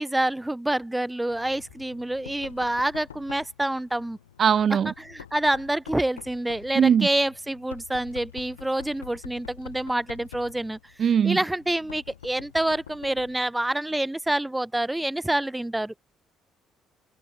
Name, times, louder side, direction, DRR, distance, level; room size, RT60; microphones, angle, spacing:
voice 1, 0.0-4.2 5.0-10.8 11.2-15.9, right 1 dB, 10° right, 1.1 m, -27 dB
Knock, 1.3-13.5, left 9 dB, 90° left, 1.9 m, -47 dB
voice 2, 4.4-4.9 6.8-7.1 11.0-11.4, right 8 dB, 50° right, 0.3 m, -20 dB
hypercardioid pair, 50°, 0 cm